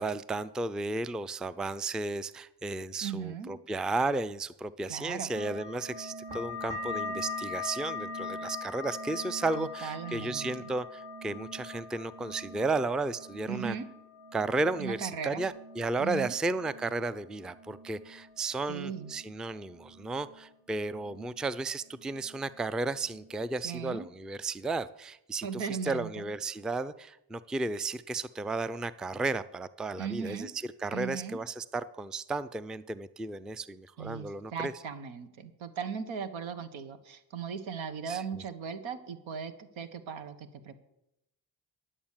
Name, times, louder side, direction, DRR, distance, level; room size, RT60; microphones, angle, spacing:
voice 1, 0.0-13.7 14.3-30.5 30.8-34.7 38.1-38.4, right 3 dB, ahead, 16 dB, 0.3 m, -34 dB
voice 2, 3.0-3.6 4.9-5.3 9.5-10.5 13.5-13.8 14.8-15.5 16.0-16.3 18.7-19.1 23.6-24.1 25.4-26.3 30.0-30.5 30.9-31.4 34.0-40.8, right 6 dB, 85° right, 10 dB, 1.2 m, -38 dB
sound 1, 5.3-20.5 20.8-21.6 21.9-22.6 23.0-23.4, left 3 dB, 70° right, 3.1 m, -42 dB
10.5 x 7.1 x 7.3 m, 0.86 s
cardioid pair, 65°, 46 cm